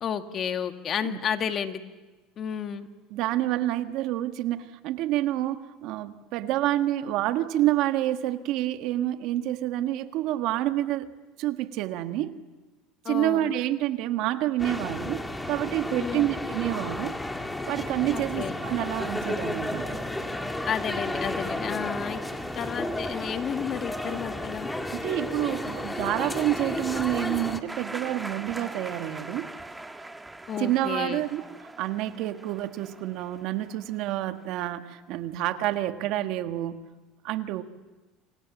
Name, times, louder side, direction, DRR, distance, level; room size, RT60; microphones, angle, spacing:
voice 1, 0.0-1.8 2.4-2.9 13.0-13.5 16.0-16.3 18.1-18.5 20.7-22.2 22.6-24.7 30.5-31.2, left 8 dB, 40° left, 7 dB, 1.8 m, -31 dB
voice 2, 3.1-11.1 11.4-12.4 13.1-17.2 17.7-20.0 24.1-24.2 24.9-29.5 30.6-36.9 37.2-37.6, right 14 dB, 65° right, 8 dB, 1.5 m, -28 dB
sound 1, 14.6-27.6, left 1 dB, 10° left, 2.0 m, -32 dB
sound 2, 27.7-34.3, right 2 dB, 10° right, 1.4 m, -42 dB
28.0 x 25.5 x 7.3 m, 1.2 s
supercardioid pair, 110°, 0 cm